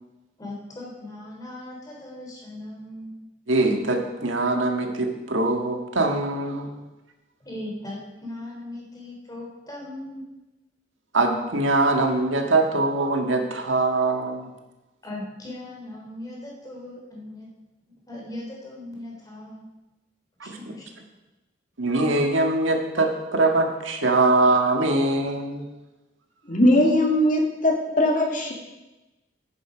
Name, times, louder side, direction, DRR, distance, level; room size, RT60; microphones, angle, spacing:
voice 1, 0.4-3.3 7.4-10.2 15.0-17.5 18.1-19.7 20.4-20.8, left 1 dB, 20° left, -3 dB, 3.3 m, -38 dB
voice 2, 3.5-6.7 11.1-14.5 20.4-20.6 21.8-25.6, right 2 dB, 80° right, 3 dB, 1.7 m, -22 dB
voice 3, 26.5-28.5, left 1 dB, 40° left, 1 dB, 2.2 m, -20 dB
11.5 x 9.3 x 5.1 m, 1.1 s
head